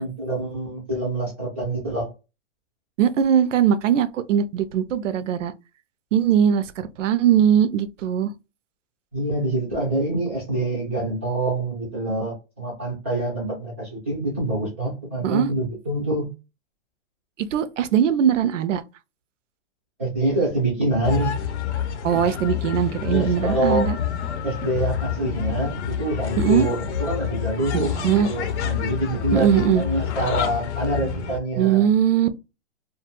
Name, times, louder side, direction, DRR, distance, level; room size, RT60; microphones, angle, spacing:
voice 1, 0.0-2.1 9.1-16.3 20.0-21.3 23.1-23.9 24.4-31.9, right 1 dB, 15° right, 0.3 m, -26 dB
voice 2, 3.0-5.5 6.1-8.3 15.2-15.5 17.4-18.8 22.0-24.0 26.4-26.7 27.7-28.3 29.3-29.8 31.6-32.3, right 9 dB, 85° right, 0.5 m, -20 dB
sound 1, 21.0-31.4, left 9 dB, 65° left, 0.7 m, -28 dB
2.4 x 2.2 x 2.8 m
hypercardioid pair, 155°, 36 cm